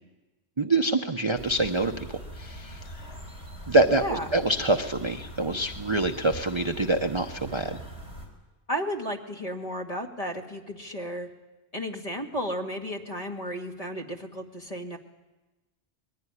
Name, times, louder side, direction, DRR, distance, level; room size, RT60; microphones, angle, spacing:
voice 1, 0.6-3.1 3.7-7.8, right 2 dB, 30° right, 5 dB, 0.8 m, -26 dB
sound 1, 1.3-8.3, equal, 70° left, 4.7 m, -42 dB
voice 2, 3.9-4.3 8.7-11.3 11.7-15.0, equal, 30° left, 1 dB, 2.2 m, -33 dB
21.5 x 15.5 x 9.8 m, 1.1 s
omnidirectional pair, 1.1 m